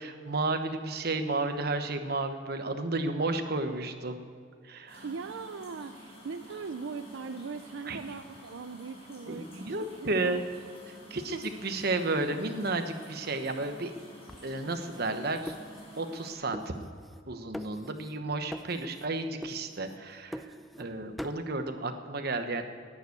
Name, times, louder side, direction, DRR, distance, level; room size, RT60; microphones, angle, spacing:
voice 1, 0.0-4.2 4.6-5.1 7.9-8.0 9.3-10.4 10.9-13.9 14.4-15.5 16.0-16.8 17.3-22.6, right 2 dB, 55° right, 7 dB, 1.1 m, -32 dB
sound 1, 4.9-16.3, equal, 30° left, 4.7 m, -50 dB
voice 2, 5.0-10.4, right 5 dB, 85° right, 9 dB, 0.5 m, -40 dB
sound 2, 14.3-16.2 16.5-17.3 17.5-18.2 18.5-19.1 19.4-20.9 21.2-21.5, equal, ahead, 0.4 m, -44 dB
11.0 x 9.7 x 8.4 m, 2.1 s
head